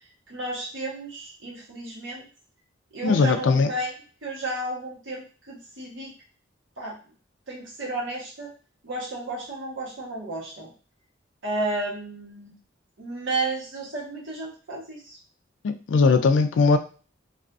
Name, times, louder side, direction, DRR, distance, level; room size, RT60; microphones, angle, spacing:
voice 1, 0.3-2.2 2.9-3.9 4.2-6.1 6.8-6.9 7.5-8.5 8.8-10.7 11.4-12.5 13.0-15.2, right 2 dB, 80° right, -4 dB, 1.0 m, -32 dB
voice 2, 3.0-3.7 15.6-16.8, left 4 dB, 75° left, 8 dB, 0.3 m, -19 dB
2.5 x 2.4 x 2.3 m, 0.38 s
head